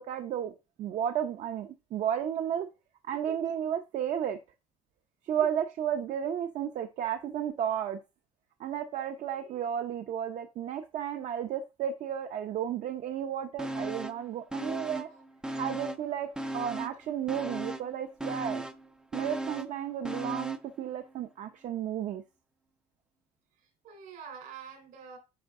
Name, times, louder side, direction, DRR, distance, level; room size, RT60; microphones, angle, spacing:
voice 1, 0.0-2.7 3.1-4.4 5.2-8.0 8.6-15.1 15.6-16.3 16.5-18.7 19.1-22.2, right 9 dB, 50° right, 0.7 m, -33 dB
sound 1, 13.6-14.2 14.5-16.1 16.4-20.7 21.1-21.2, right 1 dB, 5° right, 0.4 m, -37 dB
voice 2, 23.6-25.2, right 6 dB, 70° right, 3.4 m, -46 dB
10.0 x 4.4 x 3.7 m
cardioid pair, 160°, 15 cm